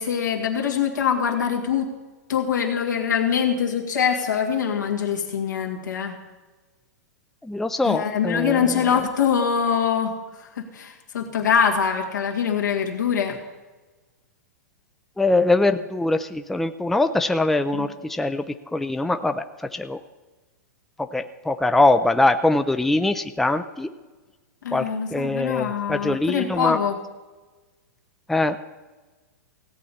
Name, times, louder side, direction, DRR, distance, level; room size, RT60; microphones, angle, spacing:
voice 1, 0.0-1.9 2.3-6.2 7.8-13.4 17.7-17.9 24.6-27.0, left 7 dB, 85° left, 0 dB, 2.1 m, -24 dB
voice 2, 7.4-8.7 15.2-18.4 18.7-19.4 19.7-20.0 21.1-23.9 24.7-24.8 25.1-26.8 28.3-28.6, left 2 dB, 5° left, 8 dB, 0.4 m, -22 dB
16.5 x 8.3 x 4.2 m, 1.2 s
hypercardioid pair, 120°, 10 cm